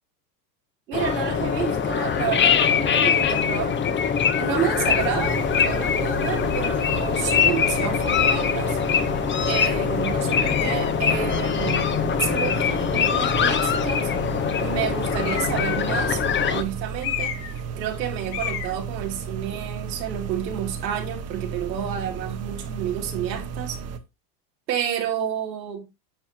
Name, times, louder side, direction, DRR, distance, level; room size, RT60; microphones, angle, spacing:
sound 1, 0.9-16.6, left 7 dB, 20° left, 1.0 m, -23 dB
voice 1, 0.9-3.8 4.4-9.1 9.5-14.1 14.6-16.2 16.5-23.8 24.7-25.8, right 9 dB, 90° right, 2.9 m, -30 dB
sound 2, 4.4-24.0, right 6 dB, 30° right, 1.1 m, -34 dB
sound 3, 7.6-8.0 8.8-8.9 10.4-11.0 15.1-15.7 17.0-17.6 17.9-18.0 18.3-18.7, left 10 dB, 65° left, 2.5 m, -31 dB
10.5 x 7.1 x 2.9 m
supercardioid pair, 115°, 50 cm